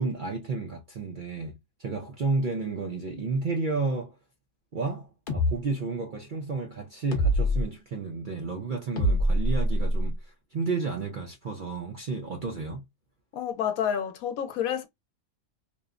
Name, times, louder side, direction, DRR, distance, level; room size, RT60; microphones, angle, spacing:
voice 1, 0.0-4.1 4.7-10.2 10.5-12.8, right 4 dB, 60° right, 0.5 m, -31 dB
sound 1, 5.3-5.5 7.1-7.6 9.0-10.1, equal, 45° left, 0.9 m, -24 dB
voice 2, 13.3-14.9, left 9 dB, 85° left, 1.1 m, -29 dB
3.0 x 2.0 x 2.4 m
omnidirectional pair, 1.4 m